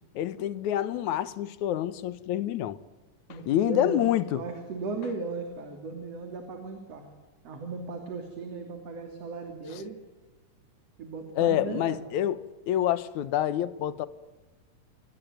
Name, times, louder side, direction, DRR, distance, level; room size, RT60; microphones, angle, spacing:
voice 1, 0.2-2.8 3.5-4.4 9.7-9.8 11.4-12.4 12.7-14.1, left 12 dB, 70° left, 2.4 m, -27 dB
voice 2, 3.3-7.1 7.4-10.0 11.0-12.1, right 4 dB, 50° right, 4.0 m, -37 dB
28.5 x 21.0 x 9.4 m
omnidirectional pair, 3.7 m